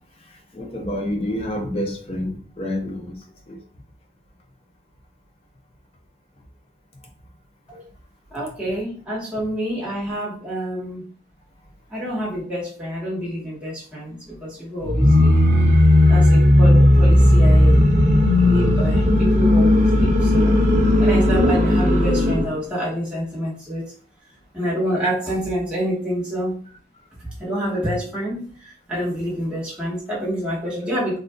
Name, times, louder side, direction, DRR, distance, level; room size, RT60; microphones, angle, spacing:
voice 1, 0.5-3.2 3.5-3.6 9.3-9.4, left 1 dB, 30° left, 2 dB, 0.5 m, -28 dB
voice 2, 8.3-11.0 11.9-15.4 16.1-17.9 18.4-20.6 21.0-23.9 24.5-26.6 27.2-31.2, equal, 5° right, -8 dB, 1.2 m, -27 dB
sound 1, 14.8-22.5, left 1 dB, 40° right, 0.6 m, -15 dB
3.7 x 2.4 x 2.3 m, 0.43 s
head